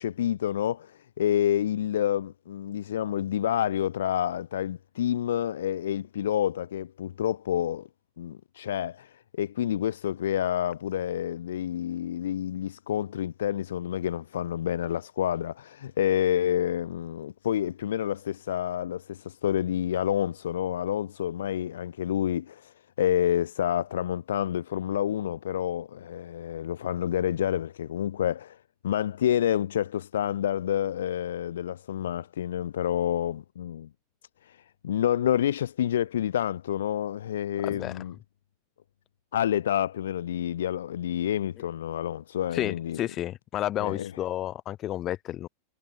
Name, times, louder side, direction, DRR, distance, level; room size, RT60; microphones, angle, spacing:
voice 1, 0.0-7.9 8.2-28.6 28.8-33.9 34.4-38.1 39.3-43.0 43.8-44.1, left 10 dB, 60° left, 1.7 m, -28 dB
voice 2, 37.6-38.0 42.5-45.5, left 13 dB, 30° left, 7.3 m, -31 dB
figure-of-eight pair, 90°, 0 cm